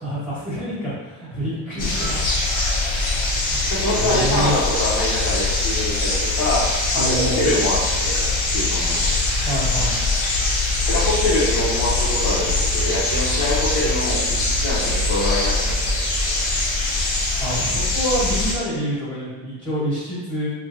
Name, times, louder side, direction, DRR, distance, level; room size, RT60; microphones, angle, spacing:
voice 1, 0.0-2.2 3.4-3.7 4.0-4.5 6.9-7.4 9.4-10.0 17.4-20.5, equal, 5° right, -12 dB, 1.4 m, -27 dB
sound 1, 1.8-18.5, left 2 dB, 90° left, 1.1 m, -22 dB
voice 2, 3.7-6.6 6.9-8.3 8.5-8.9 10.9-16.0 16.2-16.3, left 1 dB, 70° left, -6 dB, 1.2 m, -24 dB
4.4 x 2.6 x 2.6 m, 1.3 s
cardioid pair, 125°, 36 cm